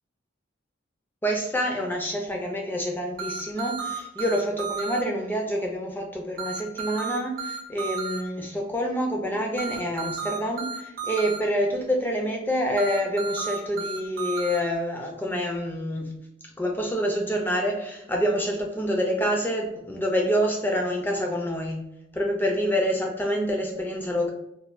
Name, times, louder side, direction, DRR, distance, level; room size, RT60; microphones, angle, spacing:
voice 1, 1.2-16.1 16.6-21.8 22.1-24.3, equal, 10° left, 0 dB, 0.3 m, -27 dB
sound 1, 3.2-5.0 6.4-8.2 9.6-11.4 12.8-14.6, right 5 dB, 45° right, 0.5 m, -32 dB
3.1 x 2.2 x 2.4 m, 0.83 s
head